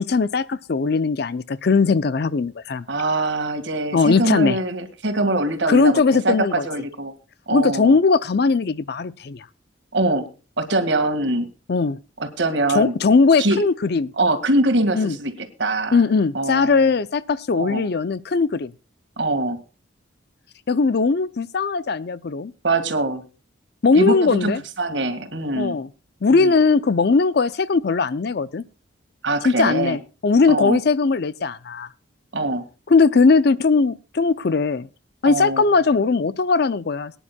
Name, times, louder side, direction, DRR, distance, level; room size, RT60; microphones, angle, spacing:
voice 1, 0.0-2.8 3.9-4.6 5.7-6.7 7.5-9.5 11.7-12.0 12.7-14.1 14.9-15.2 15.9-18.7 20.7-22.5 23.8-24.6 25.6-25.9 26.2-28.6 29.4-31.9 32.9-34.9 35.2-37.1, left 4 dB, 55° left, 0.5 m, -19 dB
voice 2, 2.9-7.1 7.5-8.0 9.9-10.3 10.6-11.5 12.2-12.9 13.4-13.6 14.2-15.3 15.6-16.0 16.3-16.9 17.5-17.8 19.2-19.6 22.6-23.2 23.9-24.5 24.8-25.8 26.3-26.5 29.2-30.0 30.5-30.8 32.3-32.7 35.3-35.6, right 2 dB, 65° right, 1.9 m, -23 dB
22.5 x 10.0 x 2.3 m
head